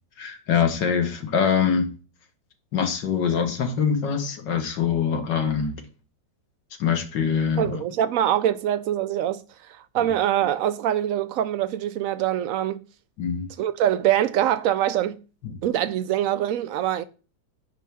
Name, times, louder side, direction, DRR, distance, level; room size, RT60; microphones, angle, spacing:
voice 1, 0.2-1.9 2.7-5.8 6.8-7.8 10.0-10.1 13.2-13.5, left 7 dB, 75° left, 2.0 m, -24 dB
voice 2, 7.6-9.4 9.7-12.8 13.6-15.2 15.6-17.0, right 11 dB, 75° right, 0.7 m, -24 dB
9.9 x 3.3 x 6.1 m
omnidirectional pair, 1.9 m